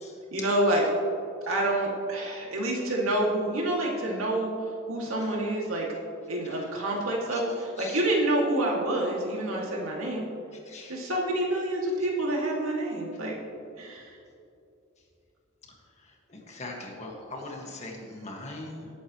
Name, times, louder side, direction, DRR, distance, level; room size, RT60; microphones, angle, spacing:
voice 1, 0.3-0.9 1.5-4.5 4.9-5.9 6.3-10.2 10.9-13.4 13.8-14.1, right 1 dB, 85° right, -2 dB, 2.4 m, -27 dB
voice 2, 10.7-11.0 16.3-18.9, left 2 dB, 35° left, -1 dB, 1.8 m, -40 dB
18.0 x 8.7 x 3.1 m, 2.6 s
head